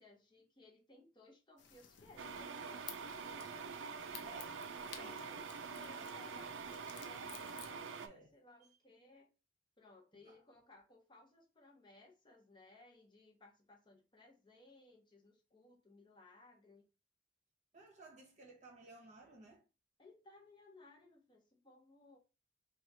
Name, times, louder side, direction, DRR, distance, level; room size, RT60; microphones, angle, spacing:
voice 1, 0.0-3.8 4.9-9.3 9.8-16.8 20.0-22.2, left 2 dB, 25° left, 0.9 m, -62 dB
sound 1, 1.6-7.7, left 8 dB, 65° left, 0.6 m, -56 dB
sound 2, 2.2-8.1, right 5 dB, 80° right, 0.4 m, -46 dB
voice 2, 4.1-4.6 5.0-6.3 8.0-8.3 10.2-10.4 17.7-19.6, right 2 dB, 40° right, 0.9 m, -58 dB
3.0 x 2.4 x 4.1 m
head